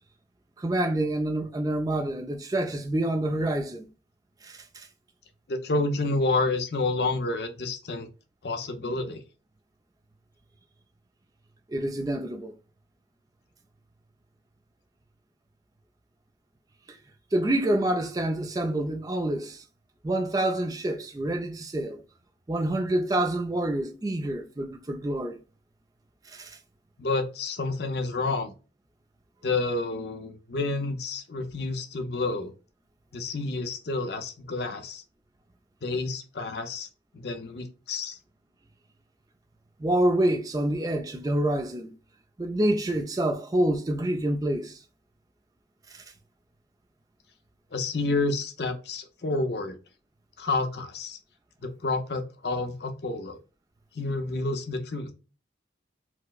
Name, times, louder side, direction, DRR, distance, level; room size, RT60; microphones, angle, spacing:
voice 1, 0.6-3.9 4.4-4.9 11.7-12.5 16.9-17.0 17.3-19.6 20.0-22.0 22.5-25.4 26.3-26.6 39.8-41.9 42.4-44.8 45.9-46.0, right 1 dB, 20° right, 0.4 m, -27 dB
voice 2, 5.5-8.1 8.4-9.2 27.0-28.5 29.4-32.5 33.1-35.0 35.8-36.9 37.1-38.2 47.7-49.8 50.4-51.2 51.6-53.4 53.9-55.1, left 3 dB, 60° left, 0.6 m, -29 dB
4.4 x 2.1 x 2.3 m
head